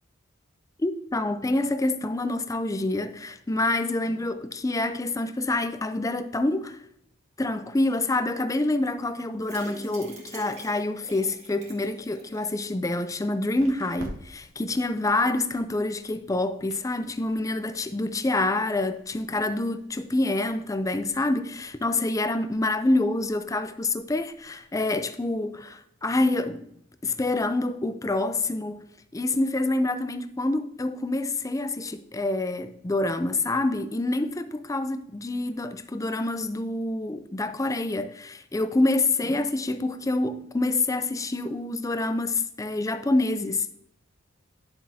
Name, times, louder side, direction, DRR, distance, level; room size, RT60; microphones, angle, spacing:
voice 1, 0.8-6.8 7.4-26.7 27.0-28.8 29.1-43.7, left 2 dB, 15° left, 0.5 m, -27 dB
sound 1, 9.4-12.5 12.9-13.0 13.3-13.4, right 1 dB, 35° right, 2.0 m, -43 dB
sound 2, 12.2-24.6, equal, 85° right, 2.1 m, -51 dB
10.5 x 7.3 x 2.8 m
head